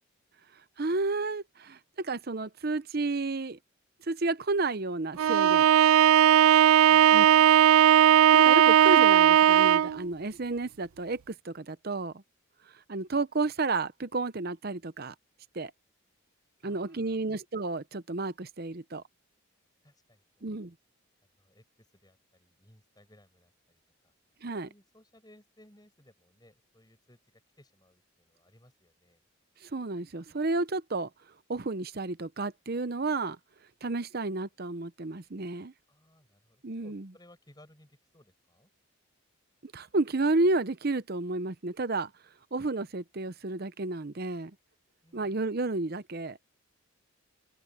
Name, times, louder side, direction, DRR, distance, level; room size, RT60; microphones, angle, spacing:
voice 1, 0.8-3.6 4.1-5.7 7.1-7.2 8.0-12.2 12.9-15.1 15.5-15.7 16.6-19.0 20.4-20.7 24.4-24.7 29.6-31.1 31.5-33.4 33.8-35.7 36.6-37.0 39.6-42.1 42.5-44.5 45.1-46.4, right 3 dB, 45° right, 0.7 m, -31 dB
Bowed string instrument, 5.2-10.0, right 10 dB, 75° right, 0.3 m, -18 dB
voice 2, 6.9-7.2 16.6-17.3 19.8-20.6 21.2-24.1 24.6-29.2 35.9-38.7 45.0-45.5, left 1 dB, 20° left, 7.3 m, -61 dB
head